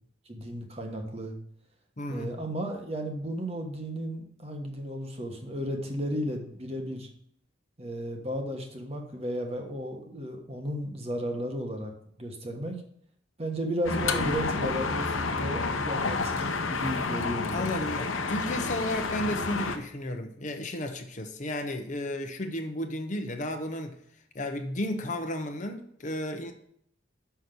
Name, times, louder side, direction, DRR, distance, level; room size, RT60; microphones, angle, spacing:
voice 1, 0.2-1.3 2.1-7.1 7.8-11.9 12.2-12.8 13.4-17.7, equal, 30° right, 3 dB, 1.3 m, -34 dB
voice 2, 2.0-2.3 17.5-24.0 24.3-26.5, left 1 dB, 40° left, 6 dB, 0.8 m, -33 dB
sound 1, 13.8-19.8, left 4 dB, 90° left, 0.9 m, -30 dB
6.3 x 5.8 x 6.7 m, 0.68 s
head